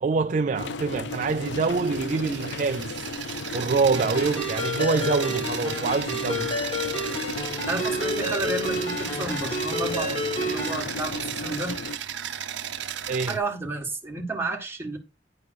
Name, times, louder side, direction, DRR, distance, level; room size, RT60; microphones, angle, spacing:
voice 1, 0.0-3.1 3.5-6.6 13.1-13.4, right 4 dB, 45° right, 0.4 m, -25 dB
sound 1, 0.5-12.0, left 3 dB, 70° left, 0.5 m, -35 dB
sound 2, 1.1-13.4, right 9 dB, 80° right, 0.7 m, -35 dB
Ringtone, 3.9-10.8, left 1 dB, 30° left, 1.8 m, -30 dB
voice 2, 7.6-11.8 13.3-15.0, right 2 dB, 15° right, 1.7 m, -31 dB
10.5 x 3.8 x 6.3 m
head